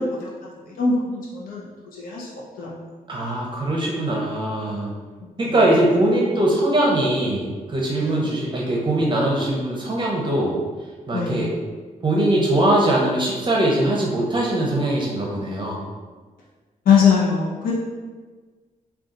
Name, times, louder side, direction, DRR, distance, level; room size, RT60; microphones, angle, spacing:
voice 1, 0.8-1.7 2.0-2.3 2.6-2.7 8.0-8.2 11.1-11.5 16.9-17.7, left 6 dB, 80° left, -5 dB, 0.7 m, -21 dB
voice 2, 3.1-4.9 5.4-10.6 11.1-11.5 12.0-15.8, right 1 dB, 35° right, -3 dB, 0.7 m, -21 dB
3.7 x 2.3 x 3.8 m, 1.4 s
cardioid pair, 85°, 15 cm